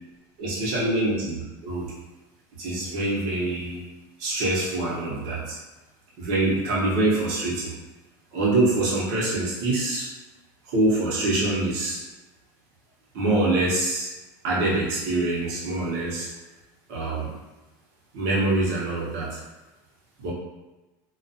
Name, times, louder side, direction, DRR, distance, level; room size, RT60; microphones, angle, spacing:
voice 1, 0.4-1.9 2.6-3.8 4.2-5.6 6.2-7.8 8.3-10.1 10.7-12.0 13.1-14.1 14.4-16.3 16.9-17.3 18.1-19.4 20.2-20.3, right 2 dB, 65° right, -6 dB, 0.9 m, -25 dB
2.4 x 2.3 x 2.7 m, 1.1 s
cardioid pair, 160°, 10 cm